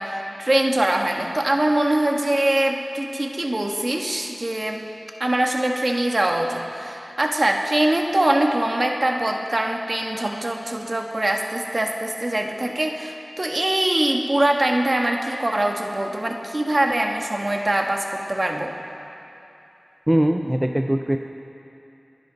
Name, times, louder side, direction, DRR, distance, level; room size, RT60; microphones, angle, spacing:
voice 1, 0.0-4.8 5.2-18.7, right 1 dB, 45° right, 2 dB, 1.5 m, -23 dB
voice 2, 20.1-21.2, right 1 dB, 20° right, 4 dB, 0.5 m, -21 dB
29.5 x 10.5 x 4.0 m, 2.9 s
wide cardioid pair, 65°, 0 cm